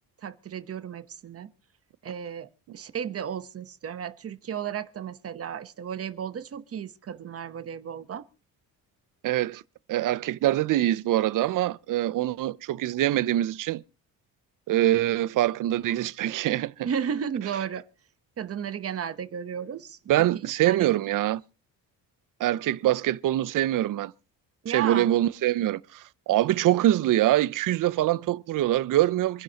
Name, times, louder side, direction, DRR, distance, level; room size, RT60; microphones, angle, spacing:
voice 1, 0.2-1.5 2.0-8.2 16.8-17.8 18.4-20.3 20.6-20.9 24.6-25.1, right 8 dB, 40° right, 0.9 m, -34 dB
voice 2, 9.2-9.6 9.9-13.8 14.7-16.9 20.1-21.4 22.4-24.1 24.7-29.4, right 14 dB, 60° right, 0.6 m, -24 dB
27.0 x 10.5 x 2.9 m
cardioid pair, 140°, 36 cm